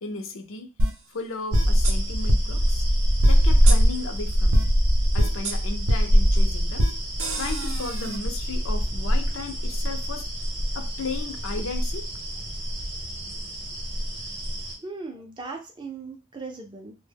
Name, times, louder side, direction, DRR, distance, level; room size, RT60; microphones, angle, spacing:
voice 1, 0.0-0.7 1.1-2.8 3.2-4.7 5.1-6.9 7.4-10.3 10.7-12.0 15.1-15.2, left 3 dB, 70° left, 5 dB, 0.5 m, -35 dB
sound 1, 0.8-0.9 1.5-1.9 2.3-2.4 3.2-3.3 3.7-3.8 4.5-4.6 5.2-5.5 5.9-6.0 6.8-6.9 7.2-8.2, equal, 85° right, 0.6 m, -23 dB
sound 2, 1.5-14.7, equal, 50° right, 0.7 m, -23 dB
voice 2, 14.8-17.0, right 3 dB, 20° right, 3 dB, 0.4 m, -38 dB
2.1 x 2.0 x 3.3 m, 0.30 s
head